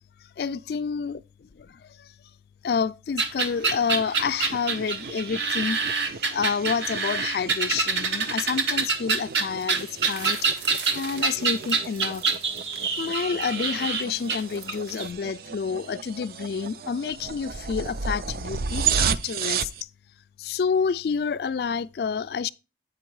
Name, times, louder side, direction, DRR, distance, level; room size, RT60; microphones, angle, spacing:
voice 1, 0.4-2.1 2.6-5.8 6.3-12.3 13.0-19.7 20.4-22.5, left 6 dB, 60° left, 0.3 m, -29 dB
sound 1, 3.2-15.1, right 4 dB, 85° right, 1.4 m, -26 dB
sound 2, 3.5-19.8, right 6 dB, 55° right, 0.4 m, -34 dB
8.6 x 5.2 x 4.7 m
head